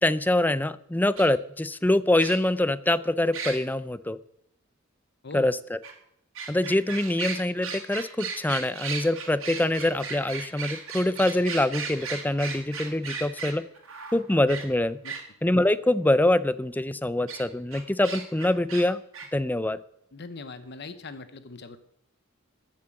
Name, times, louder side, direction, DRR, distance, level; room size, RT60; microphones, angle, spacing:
voice 1, 0.0-4.2 5.3-5.8 6.5-13.6 14.1-15.0 15.4-19.0 19.3-19.8, left 1 dB, 10° left, 15 dB, 0.5 m, -24 dB
sound 1, 1.2-1.3 2.2-2.6 3.3-3.6 5.8-5.9 6.3-15.2 17.3-17.4 17.7-18.8 19.1-19.3, right 5 dB, 75° right, 3.2 m, -36 dB
voice 2, 20.1-21.8, left 3 dB, 55° left, 12 dB, 0.9 m, -41 dB
13.5 x 7.5 x 7.7 m, 0.74 s
head